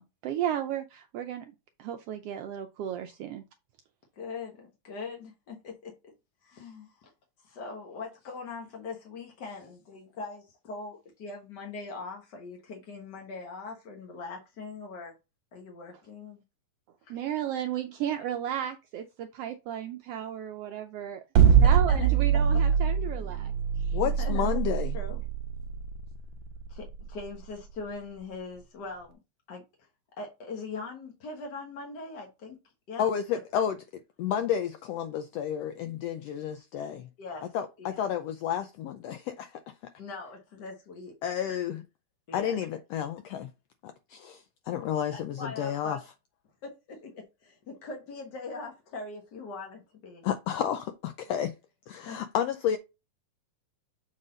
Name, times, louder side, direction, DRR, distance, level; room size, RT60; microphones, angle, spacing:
voice 1, 0.0-1.5 1.8-3.4 17.1-21.2 21.6-23.5 23.8-24.0, right 10 dB, 90° right, 1.3 m, -34 dB
voice 2, 4.2-6.1 6.4-7.1 7.4-15.1 15.5-16.4 17.0-17.2 21.4-22.2 24.0-24.7 24.9-25.2 26.7-29.2 29.5-29.6 30.2-32.6 32.9-33.1 33.5-33.6 37.2-38.0 40.0-41.1 41.5-41.6 42.3-42.6 45.1-46.0 46.6-50.3 52.0-52.2, left 3 dB, 55° left, 1.2 m, -41 dB
sound 1, 21.4-27.5, right 7 dB, 70° right, 1.1 m, -23 dB
voice 3, 23.9-25.0 33.0-33.8 34.2-37.1 37.5-39.5 41.2-41.8 42.3-43.5 43.8-46.0 50.2-51.5 51.9-52.8, left 9 dB, 85° left, 1.4 m, -31 dB
7.3 x 4.0 x 3.8 m
omnidirectional pair, 3.4 m